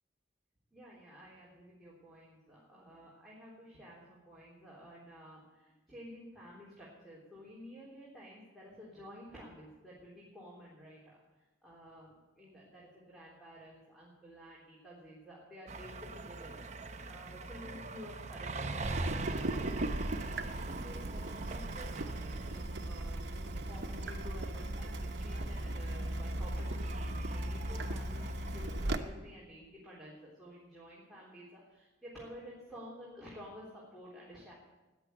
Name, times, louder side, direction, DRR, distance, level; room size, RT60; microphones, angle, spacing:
voice 1, 0.7-34.5, equal, ahead, -6 dB, 3.6 m, -52 dB
sound 1, 15.7-28.9, right 3 dB, 40° right, 0.8 m, -44 dB
Water tap faucet / Drip, 18.8-29.0, right 1 dB, 70° right, 1.1 m, -37 dB
14.5 x 10.0 x 8.0 m, 1.1 s
head